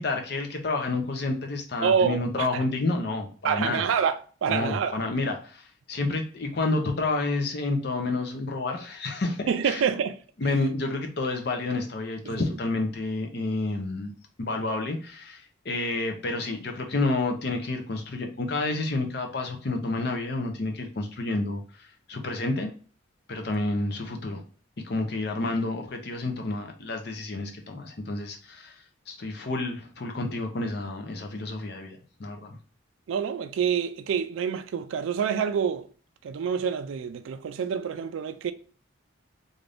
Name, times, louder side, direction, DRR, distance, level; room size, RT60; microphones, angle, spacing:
voice 1, 0.0-3.8 4.5-9.8 10.4-14.1 14.4-22.7 23.3-24.4 24.8-28.8 29.1-32.6, left 2 dB, 50° left, 0.6 m, -29 dB
voice 2, 1.8-2.6 3.4-5.0 9.5-10.2 12.3-12.4 33.1-35.9 36.2-38.5, right 7 dB, 75° right, 0.3 m, -27 dB
2.5 x 2.5 x 3.3 m
head